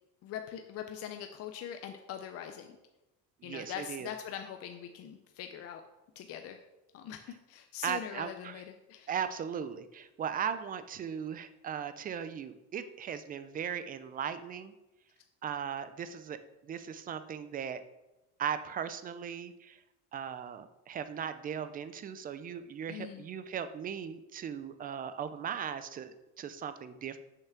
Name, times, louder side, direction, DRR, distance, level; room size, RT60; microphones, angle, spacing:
voice 1, 0.2-2.8 3.4-5.8 6.2-6.6 6.9-9.2 22.9-23.2, left 9 dB, 45° left, 6 dB, 0.6 m, -42 dB
voice 2, 3.4-4.1 7.8-8.6 9.1-14.7 15.4-17.8 18.4-19.8 20.1-27.2, right 8 dB, 25° right, 12 dB, 0.4 m, -38 dB
6.8 x 5.7 x 5.8 m, 1.0 s
cardioid pair, 160°, 34 cm